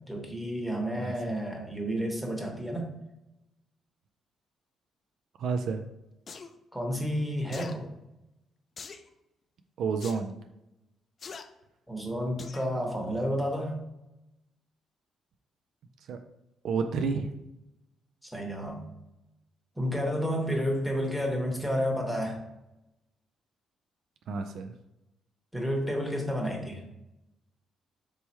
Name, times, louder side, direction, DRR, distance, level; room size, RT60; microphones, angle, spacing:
voice 1, 0.1-2.9 6.7-7.9 11.9-13.7 18.2-18.8 19.8-22.4 25.5-26.8, equal, 5° right, 0 dB, 1.1 m, -30 dB
voice 2, 5.4-5.8 9.8-10.4 16.1-16.2 16.6-17.3 24.3-24.7, right 5 dB, 75° right, 6 dB, 0.3 m, -30 dB
sound 1, 6.3-6.5 7.5-7.8 8.8-9.1 10.0-10.2 11.2-11.4 12.4-12.7 13.1-13.2, left 5 dB, 45° left, 0.4 m, -42 dB
3.4 x 3.0 x 4.3 m, 0.91 s
cardioid pair, 90°, 0 cm